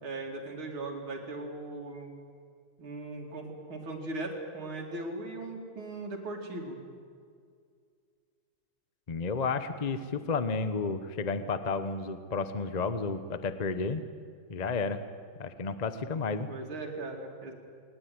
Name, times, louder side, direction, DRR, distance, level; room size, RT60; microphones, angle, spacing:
voice 1, 0.0-2.1 2.8-6.8 16.5-17.5, right 2 dB, 85° right, -1 dB, 3.6 m, -38 dB
voice 2, 9.1-14.0 14.5-15.0 15.4-16.5, left 4 dB, 45° left, 11 dB, 0.5 m, -32 dB
20.0 x 19.5 x 9.5 m, 2.1 s
omnidirectional pair, 2.2 m